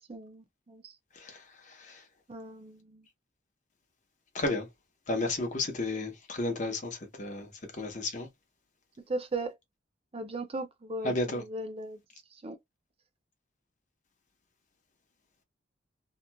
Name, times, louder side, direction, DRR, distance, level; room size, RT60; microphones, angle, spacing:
voice 1, 0.1-0.9 2.3-3.0 9.1-9.5 10.1-12.0 12.4-12.6, right 2 dB, 30° right, 0.4 m, -37 dB
voice 2, 1.1-2.0 4.3-4.7 5.1-8.3 11.0-11.4, left 2 dB, 40° left, 0.9 m, -33 dB
2.9 x 2.4 x 2.2 m
head